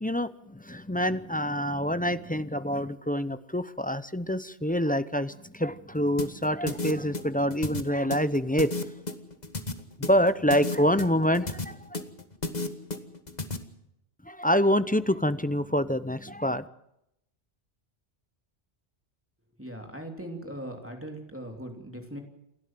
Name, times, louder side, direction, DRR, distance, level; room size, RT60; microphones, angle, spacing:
voice 1, 0.0-8.7 10.0-12.0 14.2-16.7, equal, 10° left, 13 dB, 0.6 m, -26 dB
sound 1, 6.2-13.6, left 2 dB, 40° left, 1.6 m, -33 dB
voice 2, 19.6-22.2, right 1 dB, 10° right, 3 dB, 3.1 m, -39 dB
28.5 x 12.5 x 7.5 m, 0.80 s
omnidirectional pair, 1.1 m